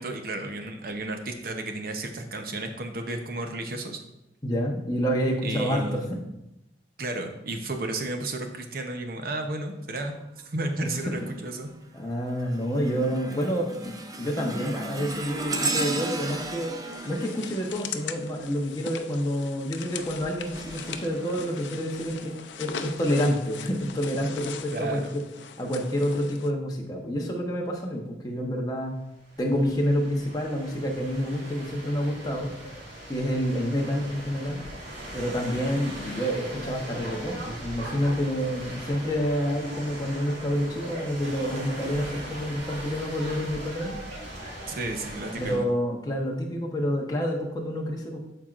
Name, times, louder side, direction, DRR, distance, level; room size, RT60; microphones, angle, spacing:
voice 1, 0.0-4.0 5.4-6.1 7.0-10.1 10.4-11.7 24.7-25.1 44.7-45.6, right 2 dB, 50° right, 5 dB, 0.8 m, -33 dB
voice 2, 4.4-6.2 11.9-16.7 17.0-25.2 25.6-28.9 29.4-32.5 33.1-34.6 35.1-44.0 45.4-48.2, equal, 20° left, -1 dB, 1.0 m, -28 dB
sound 1, 10.9-11.3 11.8-18.6 19.9-22.1 22.7-22.9 23.8-23.9, right 2 dB, 20° right, 0.5 m, -35 dB
sound 2, 16.9-26.5, left 7 dB, 80° left, 0.5 m, -40 dB
sound 3, 29.2-45.6, right 1 dB, 85° right, 2.2 m, -40 dB
11.5 x 4.5 x 2.5 m, 0.88 s
head